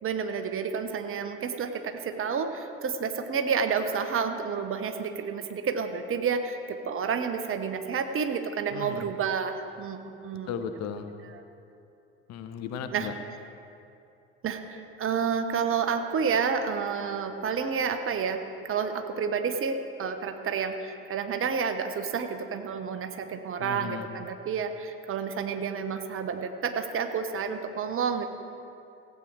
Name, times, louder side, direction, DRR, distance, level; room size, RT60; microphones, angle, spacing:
voice 1, 0.0-10.5 12.9-13.1 14.4-28.3, right 6 dB, 40° right, 7 dB, 1.1 m, -30 dB
voice 2, 8.7-9.1 10.5-11.1 12.3-13.1 23.6-24.1, left 7 dB, 50° left, 7 dB, 1.0 m, -36 dB
16.0 x 8.7 x 4.7 m, 2.6 s
figure-of-eight pair, 60°, 33 cm